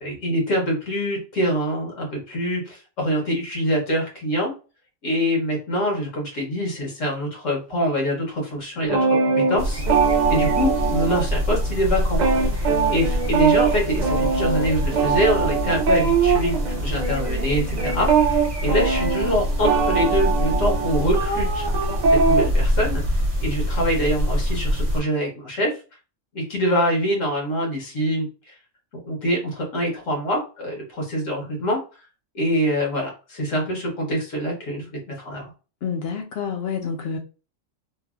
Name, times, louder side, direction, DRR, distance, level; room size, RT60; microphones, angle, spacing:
voice 1, 0.0-4.5 5.0-9.8 10.3-12.2 12.5-12.7 12.9-21.7 22.1-23.0 23.4-25.7 26.3-28.5 29.0-31.8 32.3-35.4, equal, 80° left, 1.5 m, -25 dB
sound 1, 8.8-11.6 11.8-22.5, right 5 dB, 70° right, 0.4 m, -22 dB
sound 2, 9.6-25.0, equal, 30° right, 0.9 m, -25 dB
voice 2, 35.8-37.2, left 6 dB, 65° left, 0.7 m, -28 dB
3.2 x 2.2 x 2.3 m
omnidirectional pair, 1.3 m